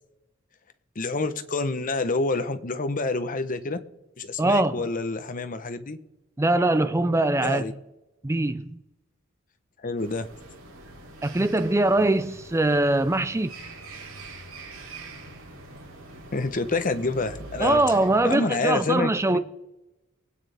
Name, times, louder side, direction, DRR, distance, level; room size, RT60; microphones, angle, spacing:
voice 1, 1.0-3.8 4.2-6.0 7.4-7.7 9.8-10.3 16.3-18.0 18.2-19.4, left 3 dB, 40° left, 0.8 m, -28 dB
voice 2, 4.4-4.9 6.4-7.6 8.2-8.8 11.2-13.5 17.6-19.4, right 2 dB, 15° right, 0.4 m, -22 dB
sound 1, 10.0-18.2, right 2 dB, 85° right, 3.6 m, -43 dB
23.5 x 9.2 x 3.4 m
head